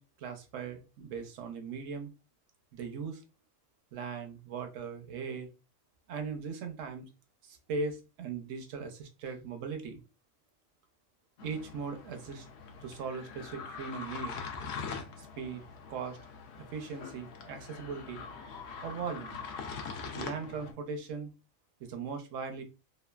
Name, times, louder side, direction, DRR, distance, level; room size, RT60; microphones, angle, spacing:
voice 1, 0.0-2.1 2.7-3.2 3.9-5.5 6.1-7.1 7.4-10.0 11.4-12.5 12.8-14.4 15.2-15.6 15.9-16.2 16.6-18.3 18.8-19.4 20.1-21.3 21.8-22.6, right 5 dB, 70° right, 5 dB, 0.9 m, -39 dB
sound 1, 11.4-20.7, left 5 dB, 65° left, 0.7 m, -43 dB
3.1 x 2.3 x 2.2 m, 0.29 s
omnidirectional pair, 1.4 m